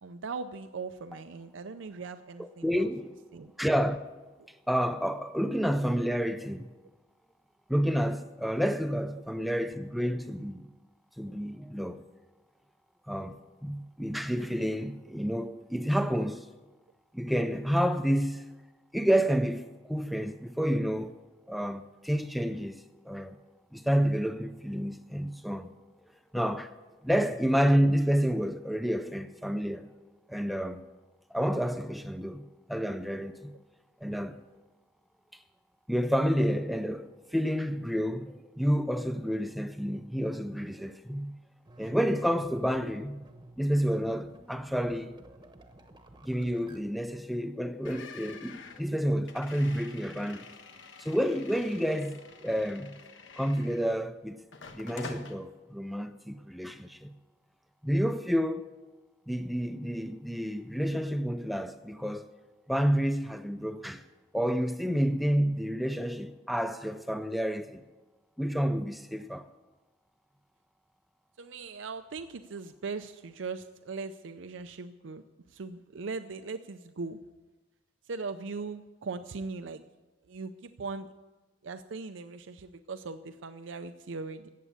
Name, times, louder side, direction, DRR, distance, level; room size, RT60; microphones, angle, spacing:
voice 1, 0.0-2.9 3.3-3.5 9.4-9.5 27.2-27.3 71.4-75.2 75.5-77.2 78.1-79.8 80.3-81.1 81.6-84.5, right 4 dB, 85° right, 0.5 m, -39 dB
voice 2, 2.6-3.1 3.6-4.0 4.7-6.7 7.7-10.7 11.2-12.0 13.1-16.5 17.1-18.4 18.9-21.2 21.5-23.4 23.7-25.7 26.3-26.7 27.0-29.9 30.3-30.8 31.3-33.5 34.0-34.4 35.9-41.4 41.8-43.2 43.6-45.2 46.2-50.5 51.0-53.0 53.4-54.4 54.7-57.1 57.8-58.7 59.3-62.3 62.7-64.0 64.3-67.8 68.4-69.5, equal, ahead, 0.4 m, -29 dB
sound 1, 41.7-46.8, right 1 dB, 20° right, 1.0 m, -53 dB
sound 2, 47.8-54.1 54.5-55.3, left 4 dB, 85° left, 1.2 m, -48 dB
14.5 x 8.4 x 8.3 m
head